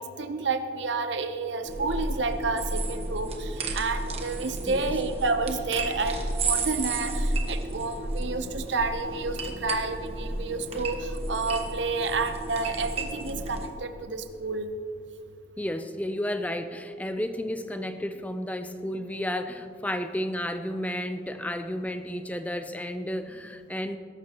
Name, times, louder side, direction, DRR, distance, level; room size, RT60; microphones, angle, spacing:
voice 1, 0.0-14.7, right 3 dB, 75° right, 8 dB, 0.8 m, -30 dB
sound 1, 1.6-13.7, right 2 dB, 35° right, 1.2 m, -32 dB
voice 2, 15.6-24.0, left 1 dB, 10° left, 8 dB, 0.5 m, -32 dB
20.5 x 11.5 x 3.0 m, 2.4 s
head